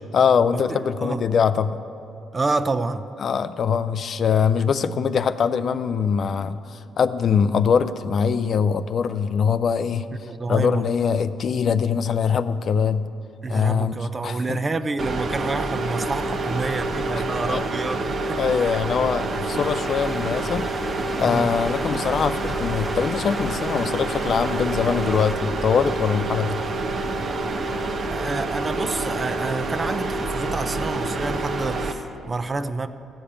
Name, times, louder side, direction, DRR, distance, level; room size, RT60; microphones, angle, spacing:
voice 1, 0.1-1.8 3.2-10.1 10.5-13.1 13.5-13.9 14.2-14.6 17.4-17.6 18.4-20.7 21.2-26.6, left 6 dB, 55° left, 13 dB, 0.4 m, -22 dB
voice 2, 0.7-1.2 2.3-3.0 10.2-10.9 13.4-18.8 21.2-21.5 28.1-32.9, right 3 dB, 30° right, 11 dB, 0.5 m, -28 dB
sound 1, 15.0-31.9, right 2 dB, 50° right, 0.9 m, -27 dB
sound 2, 19.5-25.3, equal, 5° right, 0.9 m, -39 dB
15.0 x 5.1 x 8.6 m, 2.7 s
cardioid pair, 90°, 0 cm